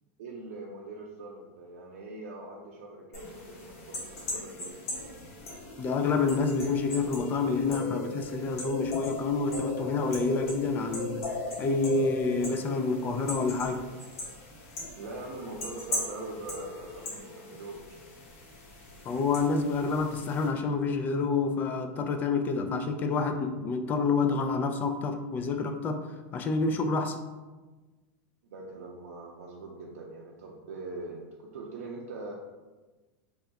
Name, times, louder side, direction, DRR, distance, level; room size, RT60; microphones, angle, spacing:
voice 1, 0.2-4.9 14.9-18.0 28.5-32.3, right 2 dB, 80° right, -2 dB, 0.5 m, -42 dB
sound 1, 3.1-20.5, left 2 dB, 80° left, 1.3 m, -39 dB
voice 2, 5.8-11.3 11.6-13.8 19.1-27.2, left 4 dB, 25° left, 7 dB, 0.3 m, -28 dB
3.4 x 2.3 x 3.9 m, 1.2 s
supercardioid pair, 140°, 8 cm